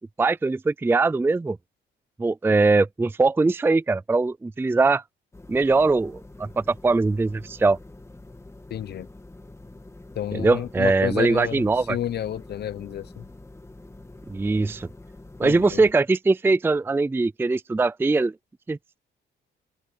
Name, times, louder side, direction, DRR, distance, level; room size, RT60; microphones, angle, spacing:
voice 1, 0.2-1.6 2.2-5.0 5.5-7.8 10.3-12.0 14.3-14.9 15.4-18.3 18.7-19.0, right 3 dB, 10° right, 0.4 m, -21 dB
sound 1, 5.3-15.9, left 2 dB, 15° left, 2.3 m, -46 dB
voice 2, 8.7-9.1 10.2-13.2 15.4-15.8, left 11 dB, 55° left, 0.7 m, -31 dB
open air
cardioid pair, 90°, 20 cm